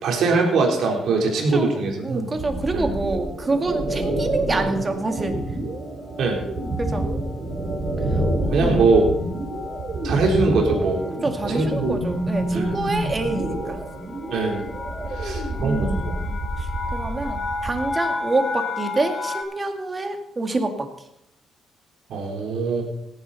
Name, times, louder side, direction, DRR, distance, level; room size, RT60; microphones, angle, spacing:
voice 1, 0.0-2.3 2.7-2.8 6.2-6.4 8.5-9.1 10.0-11.0 11.5-11.9 12.5-12.7 14.3-14.6 15.2-16.1 22.1-22.8, right 3 dB, 75° right, 0 dB, 3.7 m, -21 dB
sound 1, 1.3-1.8 2.5-2.9 3.2-3.4 3.7-19.4, left 3 dB, 40° left, 1.9 m, -35 dB
voice 2, 1.5-5.4 6.8-7.1 8.1-9.1 11.2-13.8 15.6-20.9, right 2 dB, 25° right, 5 dB, 2.0 m, -27 dB
sound 2, 2.4-17.8, right 1 dB, 60° right, 4.7 m, -28 dB
17.0 x 10.0 x 4.1 m, 0.81 s
cardioid pair, 90°, 0 cm